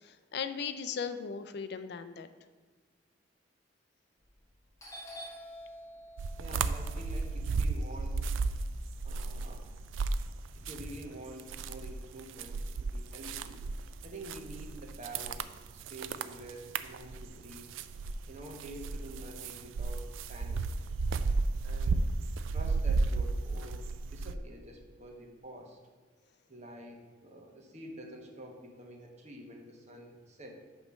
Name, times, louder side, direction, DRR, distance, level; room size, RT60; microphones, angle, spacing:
voice 1, 0.0-2.3, left 6 dB, 60° left, 11 dB, 0.4 m, -37 dB
Doorbell, 4.2-4.5 4.8-8.9 9.3-10.8, equal, 15° left, 1.4 m, -49 dB
sound 1, 6.2-11.0 11.3-24.4, right 3 dB, 80° right, 0.4 m, -33 dB
voice 2, 6.4-8.3 9.0-9.6 10.5-13.6 14.0-17.7 18.3-20.6 21.6-22.0 22.5-25.8 26.5-30.5, right 1 dB, 35° right, 1 dB, 1.1 m, -48 dB
8.5 x 3.1 x 6.2 m, 1.4 s
head